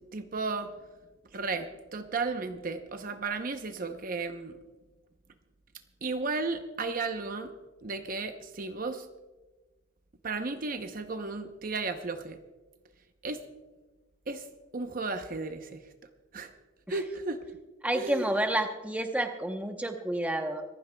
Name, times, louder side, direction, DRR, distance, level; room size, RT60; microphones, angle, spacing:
voice 1, 0.1-0.7 1.3-4.6 6.0-7.5 7.8-9.1 10.2-12.4 13.2-13.4 14.3-14.5 14.7-15.9 16.3-16.5 16.9-17.4 17.9-18.3, right 3 dB, 45° right, 8 dB, 0.8 m, -34 dB
voice 2, 17.8-20.6, right 1 dB, 10° right, 5 dB, 0.9 m, -30 dB
25.5 x 15.5 x 2.3 m, 1.2 s
head